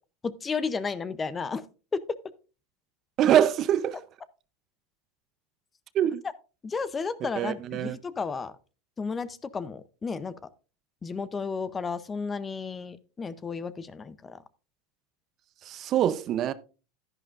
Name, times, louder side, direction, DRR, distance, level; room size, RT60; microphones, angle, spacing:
voice 1, 0.2-1.6 1.9-2.0 6.6-8.5 9.0-10.3 11.0-14.4, left 5 dB, 20° left, 0.6 m, -33 dB
voice 2, 3.2-4.0 5.9-6.2 7.2-8.0 15.6-16.5, right 10 dB, 40° right, 0.6 m, -24 dB
11.0 x 10.5 x 2.5 m
supercardioid pair, 120°, 0 cm